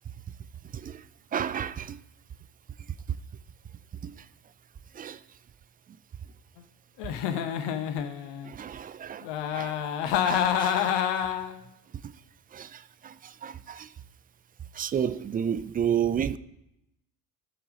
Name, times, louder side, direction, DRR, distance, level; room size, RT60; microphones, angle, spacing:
voice 1, 1.3-2.0 4.0-4.1 5.0-5.2 8.4-9.3 9.5-9.7 10.1-10.9 12.5-13.9 14.8-16.4, right 8 dB, 20° right, 0.4 m, -31 dB
Giggle, 7.0-8.5 9.2-11.6, left 9 dB, 55° left, 1.2 m, -28 dB
15.5 x 6.1 x 4.9 m
figure-of-eight pair, 55°, 49 cm